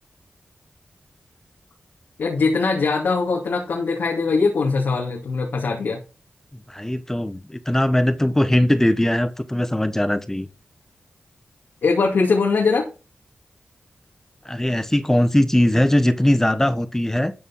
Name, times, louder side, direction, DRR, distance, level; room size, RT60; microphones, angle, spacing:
voice 1, 2.2-6.0 11.8-12.9, left 4 dB, 85° left, 2.4 m, -21 dB
voice 2, 6.7-10.5 14.4-17.3, left 1 dB, 10° left, 1.2 m, -20 dB
13.0 x 5.5 x 5.6 m
cardioid pair, 60°, 4 cm